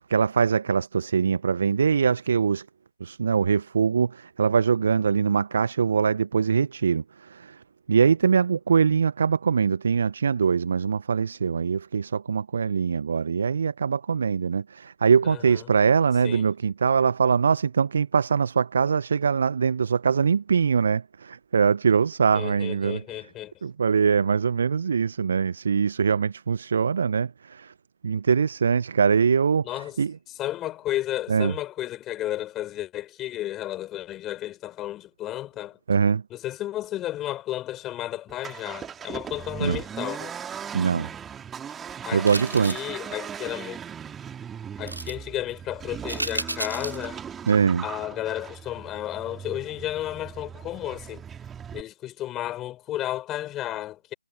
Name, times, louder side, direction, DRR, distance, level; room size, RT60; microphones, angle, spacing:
voice 1, 0.1-2.6 3.0-7.6 7.9-23.0 23.6-27.7 28.0-29.7 30.0-30.1 31.3-31.5 35.9-36.2 39.6-39.8 40.7-41.1 42.1-42.8 47.5-47.8, right 6 dB, 40° right, 1.0 m, -22 dB
voice 2, 15.2-15.7 16.2-16.5 22.3-23.5 29.6-30.0 30.4-35.8 36.3-40.4 42.0-42.3 42.5-43.8 44.8-47.2 47.8-51.2 51.7-54.1, left 14 dB, 10° left, 4.3 m, -33 dB
Accelerating revving vroom, 38.3-51.8, right 8 dB, 5° right, 2.7 m, -38 dB
sound 1, 42.3-42.9 44.9-45.1 46.1-47.0 47.5-47.6, right 2 dB, 80° right, 5.3 m, -32 dB
figure-of-eight pair, 155°, 0 cm